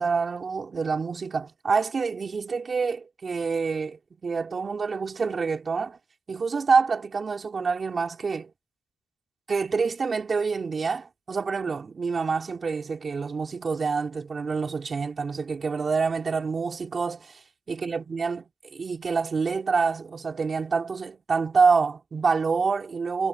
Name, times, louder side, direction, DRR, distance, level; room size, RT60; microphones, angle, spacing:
voice 1, 0.0-6.0 6.3-8.5 9.5-17.4 17.7-18.4 18.7-23.3, right 5 dB, 40° right, 3.4 m, -27 dB
cardioid pair, 90°, 0 cm